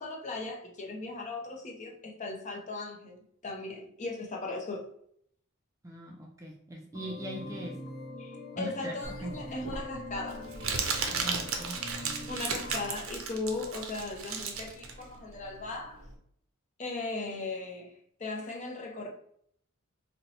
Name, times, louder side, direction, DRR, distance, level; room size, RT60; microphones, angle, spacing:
voice 1, 0.0-4.9 8.2-10.5 12.3-16.0 16.8-17.9 18.2-19.1, left 3 dB, 35° left, 0.6 m, -38 dB
voice 2, 5.8-7.7 8.6-9.3 11.1-11.8, right 1 dB, 15° right, 0.3 m, -40 dB
sound 1, 6.9-12.9, left 2 dB, 70° left, 0.8 m, -43 dB
Crumpling crinkling, 9.0-16.1, right 5 dB, 70° right, 0.5 m, -35 dB
2.8 x 2.2 x 3.9 m
head